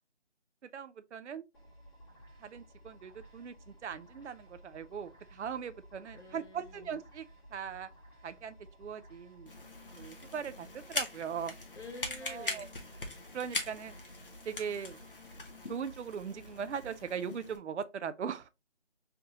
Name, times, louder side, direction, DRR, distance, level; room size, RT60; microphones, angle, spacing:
voice 1, 0.7-1.4 2.4-7.3 7.5-7.9 8.2-9.5 10.0-11.5 12.2-12.7 13.3-13.9 14.5-15.0 15.7-18.5, right 7 dB, 75° right, 0.5 m, -40 dB
sound 1, 1.5-17.2, equal, 20° left, 2.0 m, -56 dB
voice 2, 6.1-6.9 11.7-12.7, left 2 dB, 75° left, 1.4 m, -48 dB
sound 2, 9.5-17.6, left 2 dB, 50° left, 0.9 m, -42 dB
3.6 x 3.5 x 2.9 m
figure-of-eight pair, 175°, 35 cm